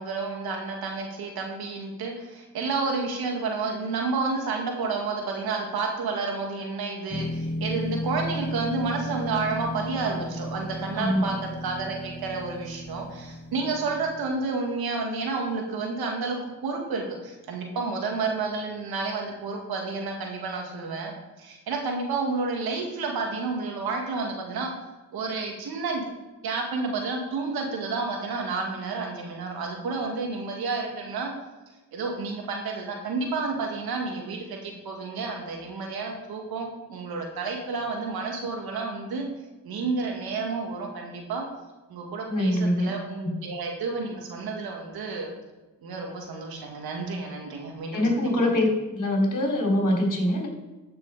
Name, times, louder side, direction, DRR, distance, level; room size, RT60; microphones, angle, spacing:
voice 1, 0.0-24.7 25.1-26.1 26.4-31.3 31.9-39.3 39.6-41.5 41.9-45.3 45.8-48.3, right 4 dB, 90° right, 1 dB, 2.1 m, -30 dB
sound 1, 7.1-14.3, equal, 30° left, 1.1 m, -34 dB
voice 2, 10.9-11.3 42.3-42.9 43.2-43.4 47.9-50.5, left 1 dB, 55° left, 0 dB, 3.6 m, -24 dB
13.5 x 6.2 x 4.9 m, 1.2 s
supercardioid pair, 45°, 36 cm